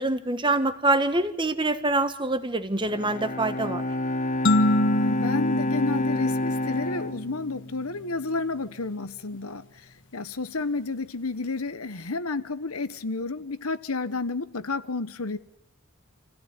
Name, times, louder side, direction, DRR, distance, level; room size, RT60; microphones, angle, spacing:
voice 1, 0.0-3.8, right 2 dB, 20° right, 1.4 m, -25 dB
Bowed string instrument, 2.8-8.2, left 2 dB, 35° left, 1.5 m, -29 dB
sound 1, 4.4-7.1, left 1 dB, 60° left, 1.5 m, -25 dB
voice 2, 5.0-15.4, left 3 dB, 90° left, 1.3 m, -31 dB
27.5 x 16.5 x 9.8 m
head